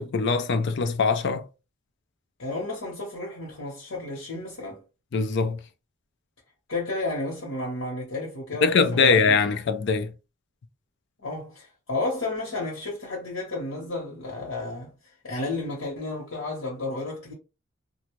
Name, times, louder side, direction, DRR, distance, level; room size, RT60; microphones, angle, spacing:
voice 1, 0.0-1.5 5.1-5.6 8.6-10.1, left 4 dB, 60° left, 0.4 m, -22 dB
voice 2, 2.4-4.8 6.7-9.4 11.2-14.9 15.2-17.3, left 2 dB, 85° left, 1.0 m, -32 dB
2.6 x 2.2 x 3.0 m
head